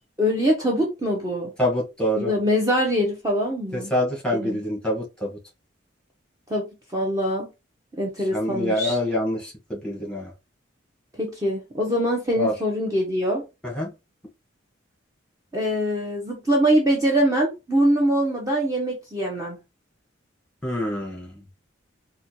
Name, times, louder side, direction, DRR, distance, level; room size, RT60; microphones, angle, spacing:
voice 1, 0.2-1.5 2.1-3.9 4.3-4.6 6.5-7.5 8.0-9.0 11.2-13.4 15.5-19.6, equal, 15° right, 0.7 m, -23 dB
voice 2, 1.6-2.3 3.7-5.3 8.3-10.3 12.4-12.5 13.7-13.9 20.6-21.3, left 1 dB, 5° left, 1.2 m, -25 dB
4.1 x 2.2 x 2.8 m
head